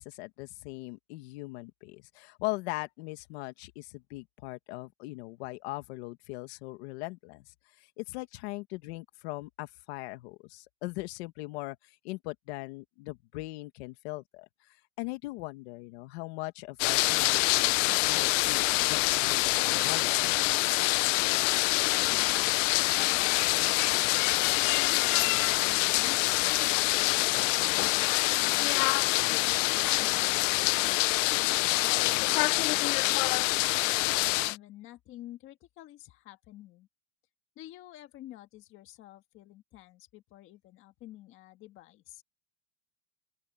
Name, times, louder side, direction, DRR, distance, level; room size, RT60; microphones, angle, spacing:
voice 1, 0.0-14.5 15.0-20.5, left 21 dB, 50° left, 1.7 m, -40 dB
sound 1, 16.8-34.6, left 21 dB, 70° left, 0.6 m, -26 dB
voice 2, 21.4-23.3 23.9-28.8 29.3-31.2 31.8-36.9 37.5-42.2, left 15 dB, 30° left, 1.7 m, -50 dB
open air
supercardioid pair, 170°, 40 cm